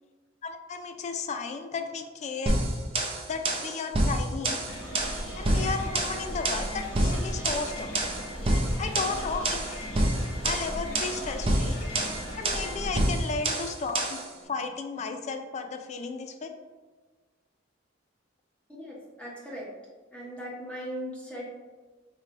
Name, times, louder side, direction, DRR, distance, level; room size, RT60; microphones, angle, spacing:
voice 1, 0.4-2.6 3.3-4.6 5.4-7.9 8.8-9.8 10.4-11.8 12.3-16.5, left 4 dB, 35° left, 7 dB, 0.3 m, -34 dB
sound 1, 2.5-14.3, right 1 dB, 30° right, 0.5 m, -28 dB
sound 2, 4.7-13.1, equal, 80° left, 1.1 m, -37 dB
voice 2, 18.7-19.7 20.1-21.5, equal, 5° left, -5 dB, 0.8 m, -39 dB
4.5 x 3.3 x 2.5 m, 1.3 s
head